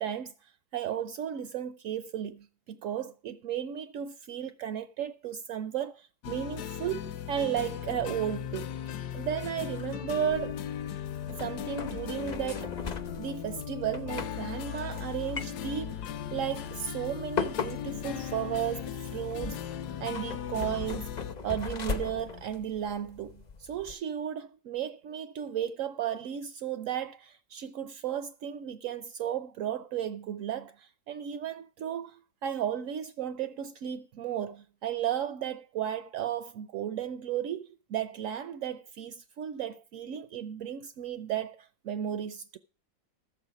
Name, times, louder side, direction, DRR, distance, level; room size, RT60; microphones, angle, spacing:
voice 1, 0.0-10.6 11.3-12.7 13.2-16.0 16.3-19.6 20.0-21.1 21.4-42.6, right 9 dB, 65° right, 0.8 m, -34 dB
sound 1, 6.2-21.4, left 9 dB, 70° left, 1.1 m, -37 dB
sound 2, 10.3-23.9, left 5 dB, 45° left, 0.5 m, -40 dB
13.5 x 7.4 x 5.0 m
omnidirectional pair, 2.0 m